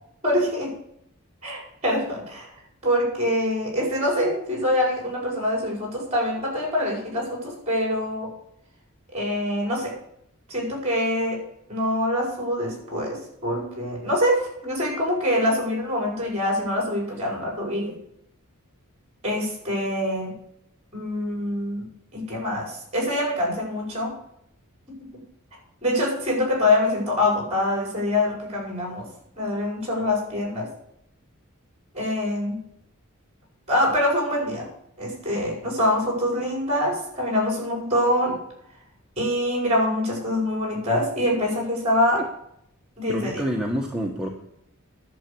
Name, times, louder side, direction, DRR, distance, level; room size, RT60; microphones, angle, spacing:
voice 1, 0.2-0.7 1.4-2.5 2.8-8.3 9.1-9.9 10.5-11.4 11.7-18.0 19.2-20.3 20.9-21.9 22.1-24.1 24.9-25.0 25.8-29.1 29.4-30.7 31.9-32.6 33.7-34.7 35.0-38.4 39.2-42.2 43.0-43.4, left 1 dB, 30° right, -1 dB, 5.7 m, -25 dB
voice 2, 43.1-44.3, equal, 5° right, -1 dB, 1.1 m, -27 dB
11.0 x 7.3 x 7.0 m, 0.74 s
head